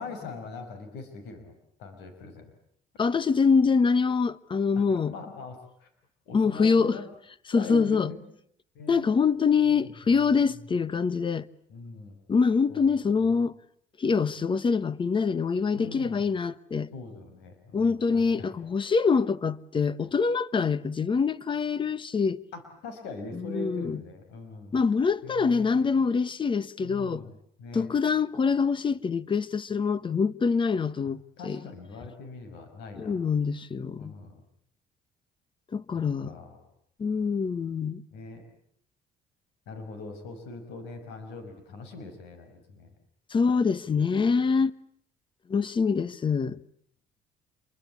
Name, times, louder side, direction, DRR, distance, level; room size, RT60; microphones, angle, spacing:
voice 1, 0.0-1.5 1.8-2.5 4.8-5.9 6.3-7.1 7.5-8.3 8.7-9.1 9.6-9.8 11.7-12.2 12.7-12.9 15.7-16.2 16.9-18.5 22.5-24.8 25.2-26.1 26.8-27.3 27.6-27.9 31.4-33.2 34.0-34.4 36.2-36.5 38.1-38.4 39.7-42.9, left 3 dB, 90° left, 5.7 m, -42 dB
voice 2, 3.0-5.1 6.3-7.0 7.5-8.1 8.9-11.5 12.3-13.6 14.0-16.9 17.7-22.4 23.3-24.0 24.7-27.2 27.7-31.6 33.0-34.1 35.7-36.3 37.0-38.0 43.3-44.7 45.5-46.6, left 5 dB, 30° left, 1.1 m, -25 dB
27.5 x 23.5 x 8.5 m
cardioid pair, 110°, 17 cm